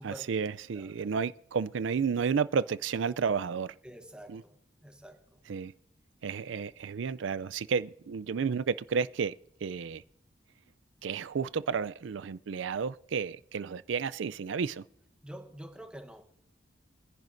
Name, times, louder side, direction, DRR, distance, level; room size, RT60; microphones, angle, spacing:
voice 1, 0.0-3.7 4.3-4.4 5.5-5.7 6.2-9.3 9.6-10.0 11.0-14.8, right 6 dB, 80° right, 0.4 m, -31 dB
voice 2, 0.7-1.1 3.8-4.6 4.8-5.4 15.2-16.2, right 1 dB, 5° right, 1.0 m, -47 dB
24.0 x 10.5 x 2.6 m
head